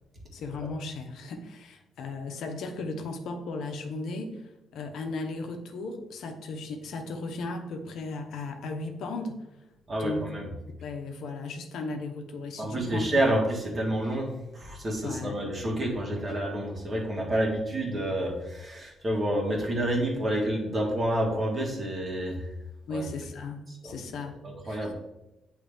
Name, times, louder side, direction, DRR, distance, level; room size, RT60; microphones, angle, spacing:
voice 1, 0.3-4.4 4.7-9.4 10.0-10.3 10.8-13.0 15.0-15.4 22.9-24.9, left 3 dB, 75° left, 4 dB, 0.8 m, -36 dB
voice 2, 9.9-10.5 12.6-22.5 22.9-23.1 23.8-23.9 24.4-24.9, right 1 dB, 35° right, 0 dB, 1.6 m, -29 dB
8.5 x 3.2 x 3.4 m, 0.93 s
cardioid pair, 90°, 0 cm